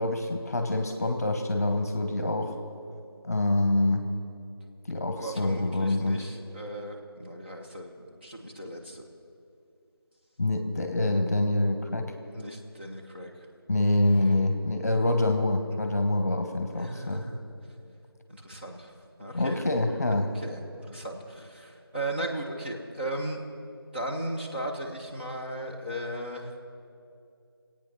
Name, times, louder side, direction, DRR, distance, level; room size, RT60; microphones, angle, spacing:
voice 1, 0.0-2.6 3.2-4.0 4.9-6.2 10.4-12.1 13.7-17.3 19.3-20.3, left 2 dB, 40° left, 6 dB, 1.1 m, -26 dB
voice 2, 5.2-9.0 12.3-13.5 16.8-17.4 18.3-18.9 19.2-19.6 20.1-20.6 20.9-23.4 23.9-26.6, right 1 dB, 25° right, -3 dB, 1.3 m, -36 dB
24.0 x 8.9 x 6.1 m, 2.5 s
figure-of-eight pair, 170°, 13 cm